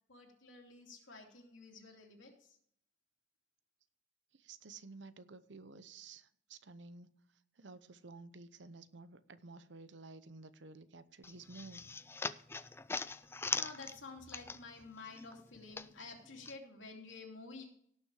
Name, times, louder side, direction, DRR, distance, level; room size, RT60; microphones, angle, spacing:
voice 1, 0.1-2.6 13.1-17.6, left 3 dB, 85° left, 1 dB, 3.0 m, -51 dB
voice 2, 4.3-7.1 7.6-11.8, right 3 dB, 70° right, 13 dB, 0.8 m, -53 dB
sound 1, 11.2-14.9 15.2-16.6, left 4 dB, 15° left, 0.3 m, -41 dB
17.5 x 6.6 x 4.8 m, 0.65 s
head